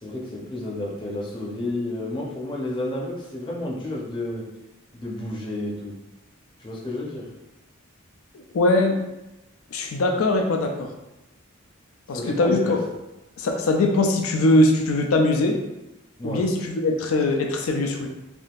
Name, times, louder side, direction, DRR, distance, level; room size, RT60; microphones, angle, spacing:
voice 1, 0.0-4.5 4.9-6.0 6.6-7.3 12.1-12.8 16.2-16.5, left 1 dB, 25° left, -4 dB, 0.6 m, -31 dB
voice 2, 8.5-9.0 9.7-10.9 12.1-12.8 13.4-15.6 16.2-18.1, left 2 dB, 85° left, 3 dB, 0.4 m, -21 dB
3.5 x 2.6 x 2.4 m, 0.97 s
head